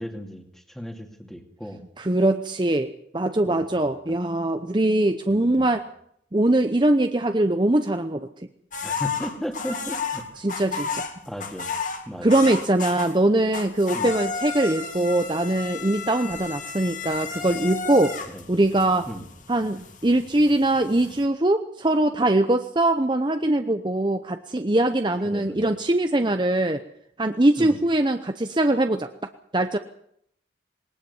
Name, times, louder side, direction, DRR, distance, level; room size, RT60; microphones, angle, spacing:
voice 1, 0.0-1.8 3.5-4.2 5.3-5.7 8.8-10.2 11.3-11.7 12.1-12.4 13.9-14.1 18.3-18.4 19.1-19.2 25.2-25.7 27.6-27.8, equal, ahead, 4 dB, 2.4 m, -36 dB
voice 2, 2.0-5.8 6.3-8.3 10.4-11.0 12.2-18.1 18.5-19.1 19.5-26.8 27.2-29.1 29.5-29.8, right 1 dB, 25° right, 7 dB, 0.8 m, -22 dB
sound 1, 8.7-13.2 13.5-21.3, left 5 dB, 45° left, 2.4 m, -33 dB
20.0 x 19.0 x 7.1 m, 0.70 s
head